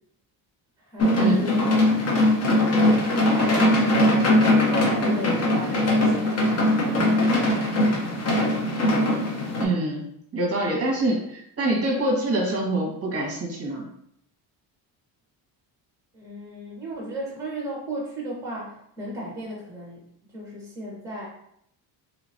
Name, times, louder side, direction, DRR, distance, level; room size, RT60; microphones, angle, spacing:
voice 1, 0.8-2.0 2.8-6.8 10.7-10.9 16.1-21.3, equal, 5° right, -3 dB, 1.2 m, -35 dB
sound 1, 1.0-9.6, left 1 dB, 35° left, 0.8 m, -21 dB
voice 2, 9.6-10.0 10.3-13.9, right 2 dB, 30° right, -2 dB, 1.3 m, -25 dB
3.4 x 2.9 x 2.6 m, 0.71 s
cardioid pair, 105°, 44 cm